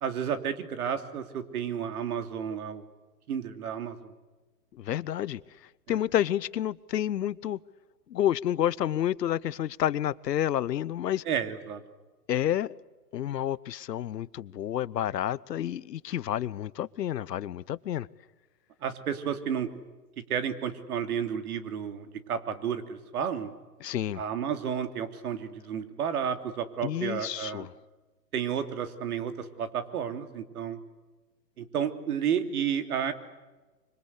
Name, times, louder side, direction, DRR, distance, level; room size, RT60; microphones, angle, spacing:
voice 1, 0.0-2.8 3.3-4.1 5.9-6.0 11.3-11.8 18.8-19.7 20.3-23.5 24.1-27.7 28.3-30.8 31.6-33.1, right 8 dB, 60° right, 8 dB, 3.2 m, -31 dB
voice 2, 4.7-5.4 5.9-7.6 8.1-11.2 12.3-12.7 13.1-18.1 23.8-24.2 26.8-27.7, left 11 dB, 75° left, 21 dB, 0.9 m, -29 dB
25.5 x 25.0 x 8.3 m, 1.2 s
hypercardioid pair, 135°, 49 cm